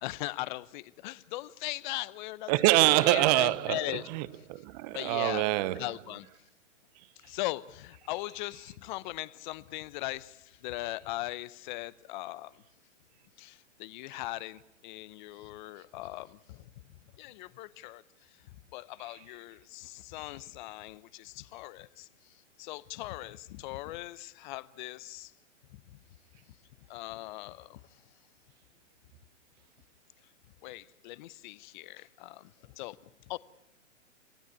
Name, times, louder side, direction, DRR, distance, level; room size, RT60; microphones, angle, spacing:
voice 1, 0.0-2.5 3.0-4.1 4.9-5.5 5.7-6.3 7.2-12.5 13.4-16.7 17.2-18.0 18.7-22.1 22.6-25.3 25.9-26.0 26.9-27.8 30.6-33.0 33.3-33.4, left 18 dB, 40° left, 0.8 m, -39 dB
voice 2, 2.5-3.8 4.1-5.8, right 17 dB, 35° right, 0.8 m, -25 dB
28.5 x 16.0 x 8.5 m
hypercardioid pair, 130°, 38 cm